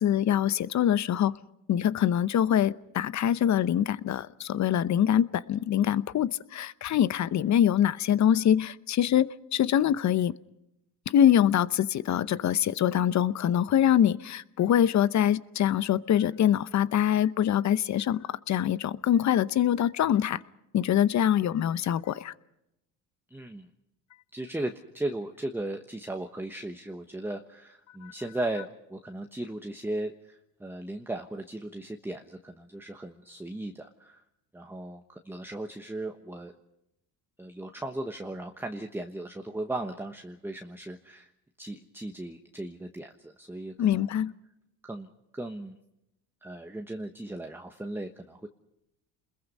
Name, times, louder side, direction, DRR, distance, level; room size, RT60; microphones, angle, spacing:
voice 1, 0.0-1.3 1.7-10.3 11.1-20.4 20.7-22.3 28.0-28.1 43.8-44.3, left 10 dB, 45° left, 17 dB, 0.9 m, -24 dB
voice 2, 23.3-23.7 24.3-34.2 34.5-36.5 37.4-41.3 41.6-44.1 44.8-45.8 46.4-48.5, right 1 dB, 5° right, 5 dB, 1.2 m, -37 dB
29.5 x 21.5 x 5.5 m, 0.86 s
supercardioid pair, 90°, 38 cm